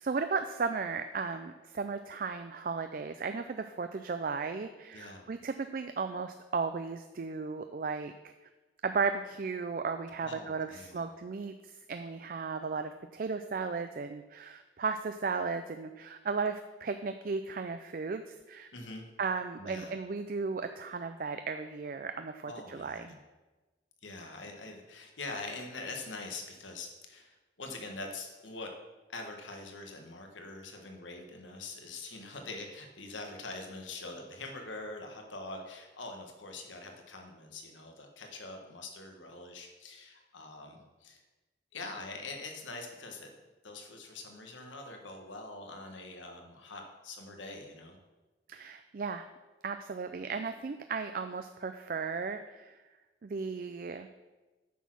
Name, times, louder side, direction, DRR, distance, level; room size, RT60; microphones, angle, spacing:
voice 1, 0.0-8.3 8.8-18.7 19.2-23.1 48.5-49.3 49.6-52.8 53.2-54.1, right 4 dB, 45° right, 8 dB, 0.4 m, -35 dB
voice 2, 4.9-5.3 10.2-11.1 18.7-19.1 19.6-19.9 22.4-23.2 24.0-28.7 29.1-41.2 41.7-43.3 43.6-48.0, left 3 dB, 90° left, 3 dB, 1.5 m, -44 dB
9.2 x 6.2 x 6.2 m, 1.2 s
head